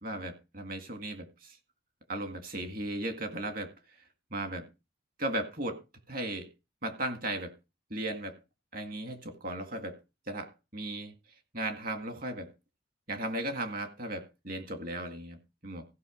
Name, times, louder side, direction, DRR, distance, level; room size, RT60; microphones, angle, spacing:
voice 1, 0.0-1.6 2.1-3.7 4.3-4.7 5.2-5.8 6.1-6.5 6.8-7.5 7.9-8.4 8.7-10.0 10.3-11.1 11.5-12.5 13.1-15.9, right 1 dB, 50° right, 1.9 m, -36 dB
15.5 x 5.4 x 5.1 m
head